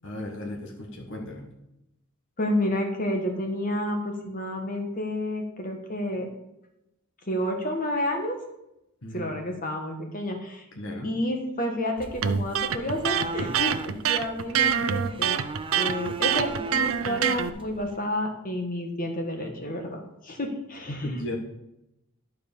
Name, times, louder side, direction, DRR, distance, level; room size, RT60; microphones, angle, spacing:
voice 1, 0.0-1.5 9.0-9.3 10.7-11.1 20.9-21.3, left 1 dB, 60° left, 0 dB, 1.4 m, -35 dB
voice 2, 2.4-6.3 7.2-8.4 9.1-10.6 11.0-15.4 15.7-21.1, left 1 dB, 40° left, 3 dB, 1.5 m, -30 dB
sound 1, 12.0-18.0, right 3 dB, 25° right, 0.5 m, -38 dB
Electric guitar, 12.2-17.5, right 8 dB, 75° right, 0.6 m, -25 dB
11.5 x 4.7 x 7.0 m, 0.87 s
head